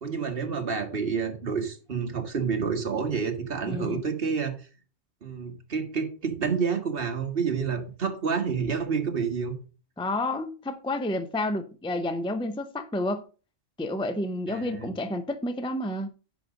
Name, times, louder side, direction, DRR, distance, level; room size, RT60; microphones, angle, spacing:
voice 1, 0.0-4.7 5.2-9.5 14.5-14.9, right 6 dB, 50° right, 1.7 m, -29 dB
voice 2, 3.7-4.0 10.0-13.2 13.8-16.1, left 1 dB, 5° left, 0.7 m, -30 dB
10.5 x 5.2 x 5.1 m
omnidirectional pair, 1.3 m